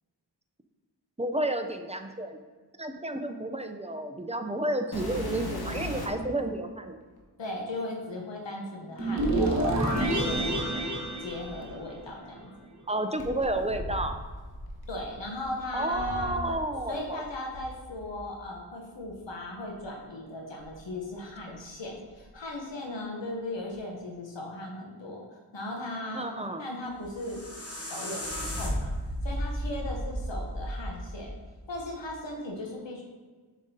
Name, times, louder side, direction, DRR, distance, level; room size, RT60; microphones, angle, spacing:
voice 1, 1.2-2.4 2.8-7.0 12.9-14.2 15.7-17.3 21.5-21.6 26.1-26.7, right 1 dB, 15° right, 6 dB, 0.5 m, -31 dB
sound 1, 4.9-6.3 7.2-7.3 9.9-12.0 13.2-16.9 17.2-18.2 19.0-19.1 19.7-19.8 20.5-21.6 21.9-22.4 23.7-23.8, left 1 dB, 60° left, 1.0 m, -39 dB
voice 2, 7.4-10.7 11.2-12.5 14.9-16.4 16.9-25.2 25.5-26.3 26.6-27.5 27.8-28.9 29.2-31.3 31.7-33.0, left 1 dB, 80° left, -1 dB, 0.9 m, -37 dB
sound 2, 9.0-12.2, right 1 dB, 40° right, 1.3 m, -28 dB
sound 3, 26.9-32.0, equal, 35° left, 1.0 m, -34 dB
6.9 x 5.1 x 2.7 m, 1.4 s
wide cardioid pair, 40°, 43 cm